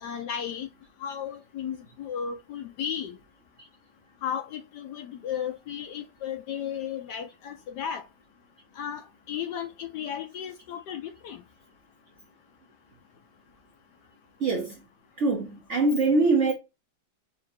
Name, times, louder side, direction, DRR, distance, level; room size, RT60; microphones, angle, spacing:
voice 1, 0.0-0.7 1.0-3.2 4.2-8.0 8.8-11.4, left 8 dB, 70° left, 1.1 m, -34 dB
voice 2, 14.4-14.8 15.2-16.5, right 3 dB, 55° right, 0.8 m, -23 dB
4.0 x 2.6 x 4.3 m
omnidirectional pair, 2.2 m